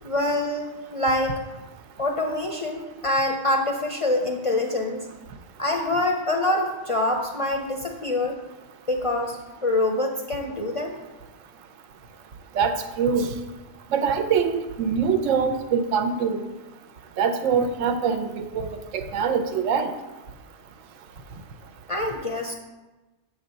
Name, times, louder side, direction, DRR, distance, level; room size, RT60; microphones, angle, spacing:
voice 1, 0.0-1.4 2.0-5.0 5.6-8.4 8.9-11.0 21.9-22.5, left 1 dB, 40° left, 2 dB, 0.4 m, -25 dB
voice 2, 12.6-13.3 13.9-16.4 17.2-19.9, right 6 dB, 75° right, 8 dB, 1.0 m, -24 dB
8.4 x 3.3 x 6.6 m, 1.1 s
omnidirectional pair, 1.4 m